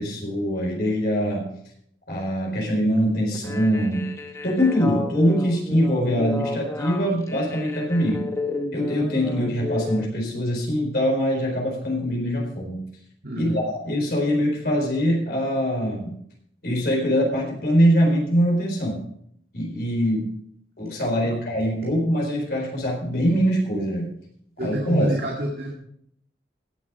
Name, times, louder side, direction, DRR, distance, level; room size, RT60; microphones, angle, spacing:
voice 1, 0.0-1.5 2.1-4.1 4.4-8.3 8.7-12.8 13.3-16.1 16.6-19.0 19.5-20.3 20.8-24.1 24.6-25.2, equal, 60° left, -1 dB, 4.3 m, -23 dB
sound 1, 3.3-10.0, left 2 dB, 15° left, 0.9 m, -32 dB
voice 2, 13.2-13.6 21.2-21.4 24.6-25.7, right 1 dB, 55° right, -2 dB, 2.2 m, -27 dB
17.0 x 7.4 x 4.7 m, 0.69 s
head